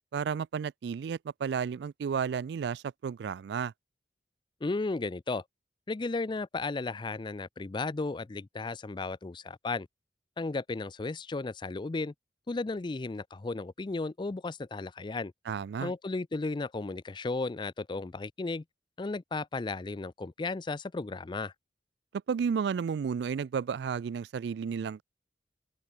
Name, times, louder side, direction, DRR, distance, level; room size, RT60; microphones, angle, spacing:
voice 1, 0.1-3.7 15.5-15.9 22.3-25.0, right 6 dB, 65° right, 0.3 m, -32 dB
voice 2, 4.6-5.4 5.9-9.9 10.4-12.1 12.5-15.3 15.8-18.6 19.0-21.5, left 3 dB, 25° left, 0.4 m, -34 dB
open air
head